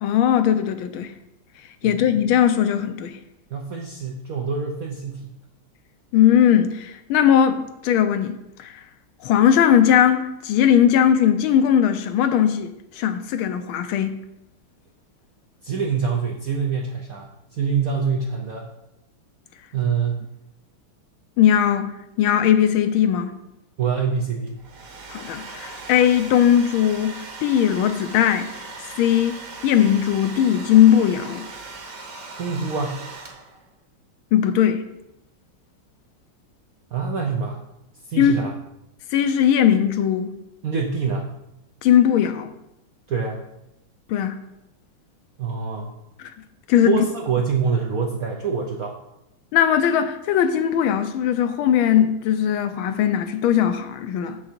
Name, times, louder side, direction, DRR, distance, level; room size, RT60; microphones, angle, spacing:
voice 1, 0.0-1.1 1.8-3.2 6.1-8.7 9.2-14.2 21.4-21.9 22.2-23.3 25.1-28.5 29.0-31.5 34.3-34.8 38.2-38.4 39.1-40.3 41.8-42.5 44.1-44.4 46.7-46.9 49.5-54.4, left 9 dB, 80° left, 1.4 m, -19 dB
voice 2, 3.5-5.3 15.6-18.7 19.7-20.2 23.8-24.6 32.4-33.0 36.9-37.6 38.1-38.5 40.6-41.3 43.1-43.4 45.4-46.0 46.8-49.0, right 5 dB, 70° right, 0.8 m, -25 dB
Domestic sounds home sounds, 24.5-33.7, right 3 dB, 45° right, 1.4 m, -39 dB
7.1 x 6.5 x 4.4 m
omnidirectional pair, 2.4 m